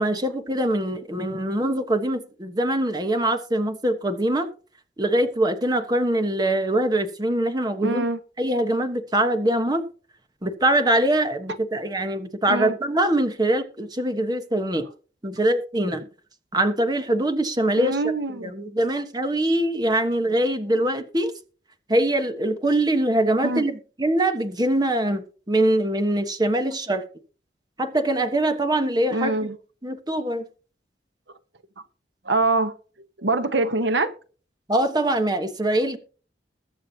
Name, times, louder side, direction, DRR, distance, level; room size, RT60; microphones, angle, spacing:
voice 1, 0.0-4.5 5.0-8.0 8.4-9.8 10.4-14.9 15.2-16.1 16.5-18.0 18.3-21.3 21.9-27.0 27.8-29.3 29.8-30.4 34.7-36.0, right 1 dB, 25° right, 1.2 m, -23 dB
voice 2, 7.8-8.2 12.5-12.7 17.7-18.5 23.4-23.6 29.1-29.6 32.2-32.7 33.2-34.1, right 2 dB, 80° right, 1.1 m, -24 dB
21.5 x 7.4 x 2.9 m
head